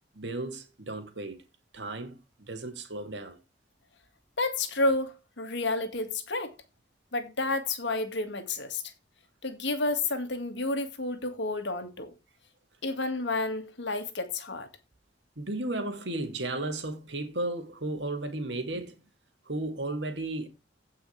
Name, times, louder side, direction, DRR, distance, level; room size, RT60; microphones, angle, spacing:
voice 1, 0.1-1.4 1.7-3.4 15.4-18.9 19.5-20.5, right 2 dB, 70° right, 2.6 m, -34 dB
voice 2, 4.4-6.6 7.1-8.8 9.4-12.1 12.8-14.7, left 2 dB, 70° left, 2.0 m, -30 dB
16.5 x 5.6 x 3.3 m
head